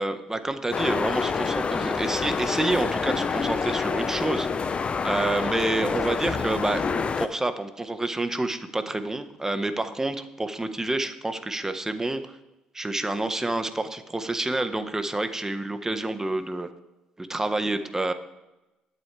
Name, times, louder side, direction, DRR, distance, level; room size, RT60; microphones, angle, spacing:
voice 1, 0.0-6.8 7.2-12.2 12.7-16.7 17.2-18.1, right 2 dB, 15° right, 9 dB, 1.4 m, -28 dB
sound 1, 0.7-7.3, left 5 dB, 40° left, 0.7 m, -27 dB
21.5 x 7.9 x 3.5 m, 0.99 s
hypercardioid pair, 60°, 3 cm